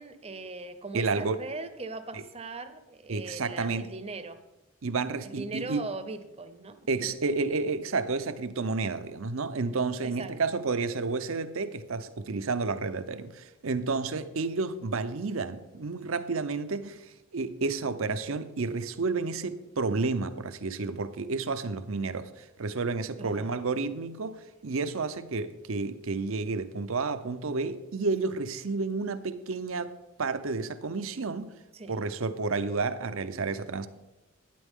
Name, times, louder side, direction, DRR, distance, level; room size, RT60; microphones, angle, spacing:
voice 1, 0.0-4.4 5.2-6.8 10.0-10.3 23.2-23.5 31.7-31.9, right 3 dB, 30° right, 0.7 m, -39 dB
voice 2, 0.9-1.4 2.1-2.2 3.1-3.9 4.8-5.9 6.9-29.9 30.2-31.5 31.9-33.9, right 4 dB, 65° right, 0.6 m, -31 dB
11.5 x 9.7 x 3.6 m
head